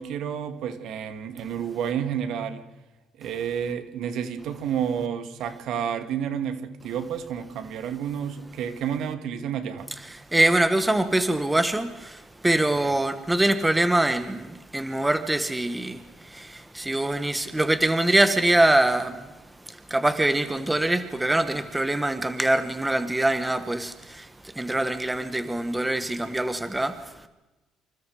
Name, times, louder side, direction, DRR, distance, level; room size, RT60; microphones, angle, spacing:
voice 1, 0.0-2.6 3.2-9.9 12.7-13.0, right 8 dB, 65° right, 2.4 m, -30 dB
voice 2, 10.0-27.3, right 1 dB, 10° right, 1.4 m, -24 dB
28.5 x 27.0 x 5.0 m
cardioid pair, 135°, 0 cm